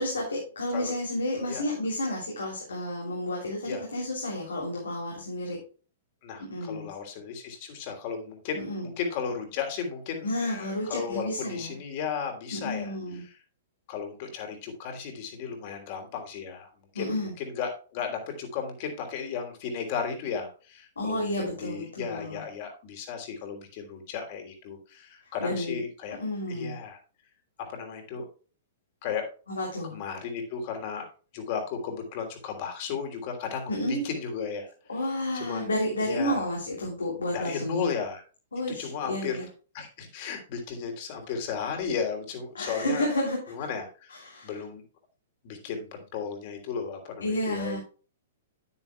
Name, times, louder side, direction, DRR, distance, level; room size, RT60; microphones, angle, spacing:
voice 1, 0.0-5.6 6.4-6.9 8.5-8.9 10.2-11.8 12.5-13.2 16.9-17.3 21.0-22.4 25.4-25.8 26.2-26.8 29.5-30.0 33.7-34.0 34.9-37.9 38.5-39.5 42.5-43.4 44.1-44.5 47.2-47.8, left 1 dB, 90° left, -2 dB, 3.2 m, -31 dB
voice 2, 6.2-13.3 13.9-16.7 16.9-26.2 26.5-27.0 27.7-28.3 29.0-29.3 29.9-31.1 31.3-34.7 35.3-35.7 36.0-36.4 37.3-38.2 38.8-39.4 39.7-43.1 43.5-44.2 44.4-44.8 45.4-47.8, left 6 dB, 50° left, 4 dB, 3.2 m, -35 dB
9.8 x 9.8 x 2.3 m, 0.36 s
hypercardioid pair, 115°, 0 cm